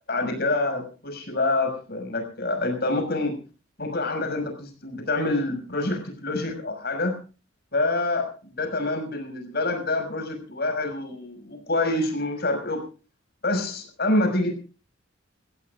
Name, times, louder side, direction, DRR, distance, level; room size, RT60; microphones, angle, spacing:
voice 1, 0.1-3.4 3.8-7.1 7.7-12.8 13.4-14.6, left 2 dB, 55° left, 6 dB, 5.9 m, -26 dB
29.0 x 16.5 x 2.4 m, 0.34 s
head